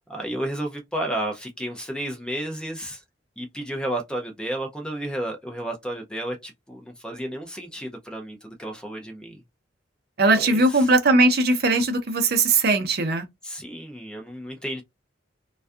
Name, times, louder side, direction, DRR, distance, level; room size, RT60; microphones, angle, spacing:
voice 1, 0.1-3.0 3.4-9.4 10.3-10.9 13.4-14.8, right 1 dB, 5° left, 0.4 m, -32 dB
voice 2, 10.2-13.2, right 2 dB, 50° right, 0.6 m, -19 dB
2.5 x 2.3 x 2.3 m
head